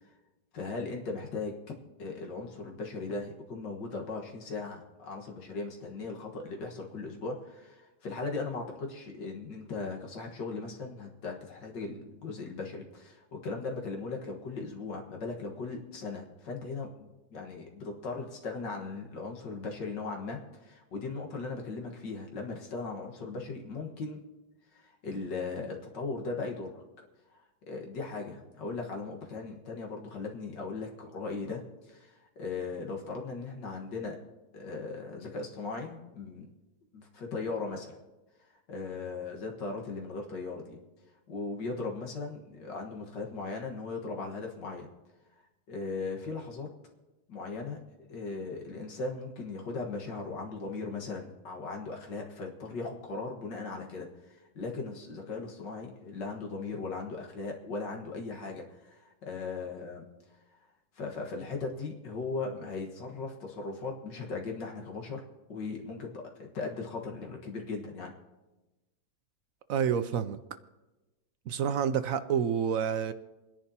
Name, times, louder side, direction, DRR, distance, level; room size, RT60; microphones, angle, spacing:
voice 1, 0.5-1.7 2.0-24.2 24.7-26.8 27.3-31.6 31.9-34.2 34.5-36.5 36.9-38.0 38.5-40.8 41.3-44.9 45.7-46.7 47.3-47.8 48.1-60.1 61.0-65.2 65.5-68.1, left 3 dB, 80° left, 2.2 m, -38 dB
voice 2, 69.7-70.4 71.5-73.1, right 8 dB, 65° right, 0.8 m, -28 dB
28.5 x 10.5 x 2.8 m
omnidirectional pair, 1.9 m